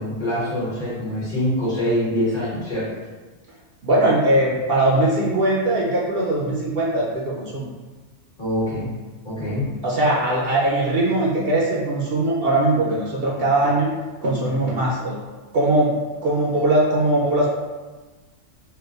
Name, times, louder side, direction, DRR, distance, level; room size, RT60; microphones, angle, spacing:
voice 1, 0.0-2.9 8.4-8.9 9.2-9.7, equal, 50° left, -9 dB, 1.5 m, -24 dB
voice 2, 3.8-7.7 9.8-13.9 14.2-15.2 15.5-17.5, right 1 dB, 60° right, -4 dB, 0.7 m, -20 dB
4.3 x 2.2 x 2.4 m, 1.3 s
omnidirectional pair, 1.2 m